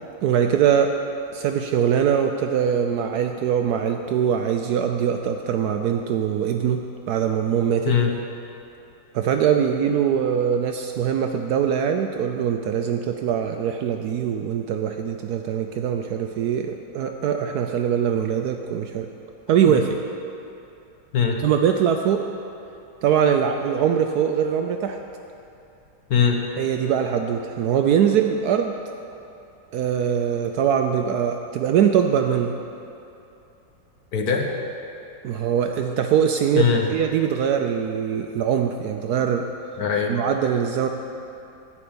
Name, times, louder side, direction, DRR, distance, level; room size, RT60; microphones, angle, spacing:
voice 1, 0.2-0.9 1.3-6.8 7.1-7.9 9.1-19.1 19.5-20.0 21.4-22.3 23.0-25.0 26.6-28.8 29.7-32.5 35.2-39.5 40.1-40.9, right 8 dB, 70° right, 4 dB, 0.9 m, -22 dB
voice 2, 26.1-26.4 34.1-34.5 36.5-36.9 39.8-40.1, left 7 dB, 60° left, 1 dB, 1.4 m, -21 dB
11.5 x 5.5 x 8.6 m, 2.8 s
omnidirectional pair, 2.0 m